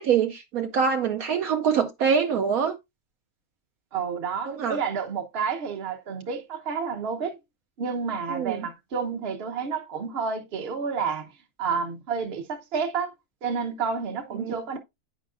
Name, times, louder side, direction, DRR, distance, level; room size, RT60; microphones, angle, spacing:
voice 1, 0.0-2.7 4.5-4.8 8.3-8.7 14.4-14.6, right 7 dB, 70° right, 1.1 m, -24 dB
voice 2, 3.9-7.4 7.8-11.3 11.6-13.1 13.4-14.8, right 5 dB, 45° right, 1.1 m, -30 dB
9.3 x 5.1 x 2.4 m
omnidirectional pair, 1.6 m